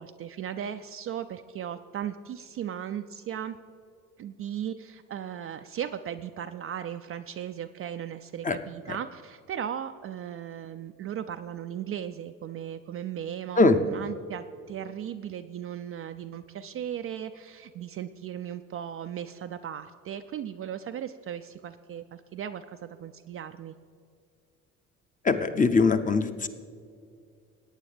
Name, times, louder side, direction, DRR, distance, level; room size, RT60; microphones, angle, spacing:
voice 1, 0.0-3.6 4.2-23.7, right 9 dB, 35° right, 8 dB, 0.4 m, -37 dB
voice 2, 25.2-26.5, left 3 dB, 20° left, 9 dB, 0.7 m, -22 dB
17.5 x 9.1 x 3.3 m, 2.3 s
hypercardioid pair, 55°, 41 cm